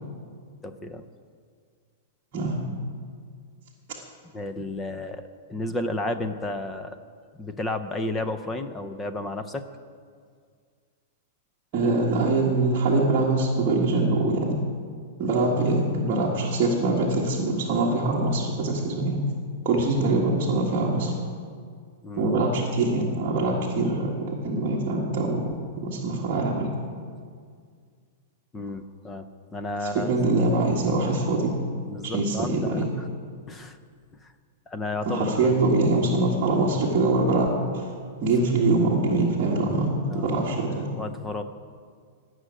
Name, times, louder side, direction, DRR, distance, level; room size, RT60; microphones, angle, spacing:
voice 1, 0.6-1.0 4.3-5.2 5.5-7.0 7.4-9.6 22.0-22.3 28.5-29.3 29.5-30.1 31.9-32.9 33.5-33.8 34.2-34.3 34.7-35.6 40.1-41.4, left 2 dB, 10° left, 8 dB, 0.5 m, -32 dB
voice 2, 2.3-2.7 11.7-14.6 15.2-19.2 19.6-21.1 22.2-24.2 24.4-25.4 25.8-26.7 29.8-31.5 32.0-32.9 35.0-37.9 38.2-40.9, right 2 dB, 25° right, -6 dB, 1.7 m, -23 dB
17.5 x 6.4 x 9.8 m, 2.1 s
supercardioid pair, 180°, 0 cm